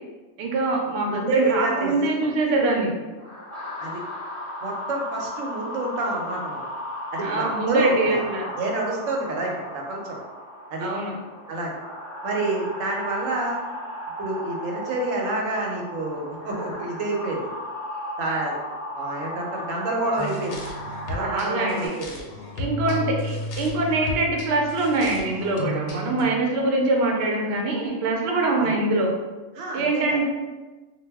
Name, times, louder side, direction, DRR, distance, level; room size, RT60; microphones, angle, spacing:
voice 1, 0.4-2.9 7.2-8.5 10.8-11.2 21.2-21.9 22.6-29.1 29.7-30.3, right 2 dB, 65° right, 0 dB, 0.7 m, -23 dB
voice 2, 1.1-2.1 3.8-4.0 4.6-6.7 7.1-10.2 10.7-10.9 11.5-11.8 12.2-13.6 14.2-17.5 18.2-18.6 18.9-20.6 21.1-22.2 22.9-23.0 28.6-28.7 29.6-30.3, right 2 dB, 85° right, -1 dB, 1.0 m, -28 dB
sound 1, 3.2-21.9, equal, 20° left, 0.5 m, -36 dB
sound 2, 20.2-26.2, left 1 dB, 65° left, 0.7 m, -33 dB
2.2 x 2.0 x 3.3 m, 1.2 s
omnidirectional pair, 1.3 m